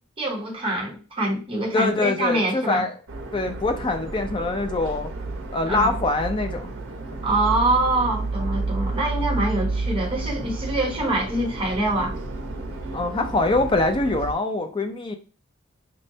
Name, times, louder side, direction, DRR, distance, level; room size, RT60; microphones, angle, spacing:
voice 1, 0.2-2.8 5.7-6.0 7.2-12.2, right 1 dB, 25° right, -1 dB, 0.9 m, -25 dB
voice 2, 1.7-2.9 3.3-5.1 5.5-6.7 7.1-7.2 12.9-15.1, left 2 dB, 25° left, 6 dB, 0.4 m, -24 dB
sound 1, 3.1-14.3, right 3 dB, 60° right, 0.6 m, -31 dB
5.3 x 2.1 x 2.7 m, 0.34 s
head